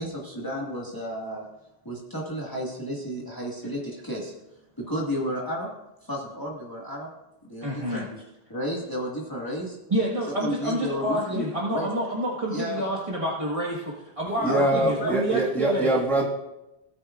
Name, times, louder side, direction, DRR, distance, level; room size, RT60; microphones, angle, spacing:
voice 1, 0.0-1.5 1.8-4.3 4.9-5.7 6.0-7.1 7.4-8.2 8.5-9.8 10.4-11.9 12.5-12.9 14.5-15.2, equal, 20° left, -3 dB, 1.8 m, -32 dB
voice 2, 7.6-8.1 9.9-15.9, right 1 dB, 30° right, -5 dB, 1.5 m, -28 dB
voice 3, 14.4-16.3, right 1 dB, ahead, -4 dB, 1.6 m, -23 dB
17.0 x 9.5 x 2.4 m, 0.94 s
omnidirectional pair, 1.1 m